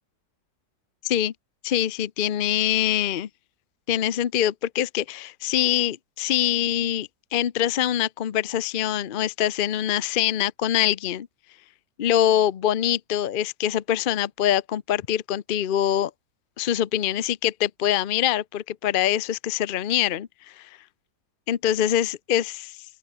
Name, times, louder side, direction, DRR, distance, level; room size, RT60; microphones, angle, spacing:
voice 1, 1.6-3.3 3.9-11.3 12.0-16.1 16.6-20.3 20.6-20.7 21.5-22.7, left 11 dB, 70° left, 0.5 m, -24 dB
open air
omnidirectional pair, 1.9 m